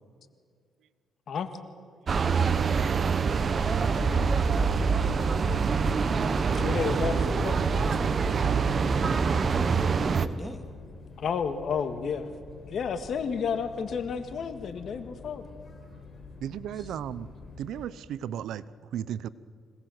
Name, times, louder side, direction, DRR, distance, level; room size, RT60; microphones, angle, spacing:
sound 1, 2.1-10.3, right 5 dB, 45° right, 1.1 m, -25 dB
voice 1, 3.7-4.9 8.9-10.7 16.7-17.0, left 1 dB, 15° left, 5 dB, 2.7 m, -41 dB
voice 2, 6.3-7.6 11.2-12.3 12.6-15.4, left 6 dB, 60° left, 9 dB, 1.8 m, -31 dB
sound 2, 8.7-17.9, left 4 dB, 35° left, 4.5 m, -47 dB
voice 3, 16.4-17.3 17.6-18.6 18.9-19.3, right 10 dB, 80° right, 17 dB, 0.7 m, -34 dB
25.5 x 18.5 x 7.9 m, 2.1 s
cardioid pair, 90°, 0 cm